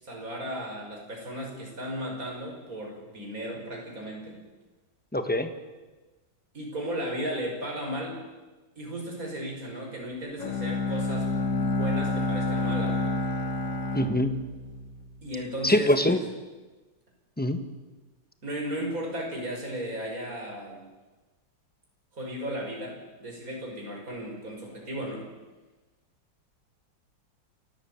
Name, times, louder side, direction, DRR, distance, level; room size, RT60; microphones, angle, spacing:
voice 1, 0.0-4.4 6.5-8.2 8.8-13.2 15.2-16.2 18.4-20.8 22.1-25.3, equal, 45° right, 0 dB, 6.1 m, -35 dB
voice 2, 5.1-5.5 13.9-14.4 15.6-16.2 17.4-17.6, left 1 dB, 5° left, 8 dB, 1.3 m, -23 dB
Bowed string instrument, 10.4-15.4, left 2 dB, 75° left, 2.9 m, -29 dB
29.0 x 15.0 x 8.8 m, 1.2 s
omnidirectional pair, 2.0 m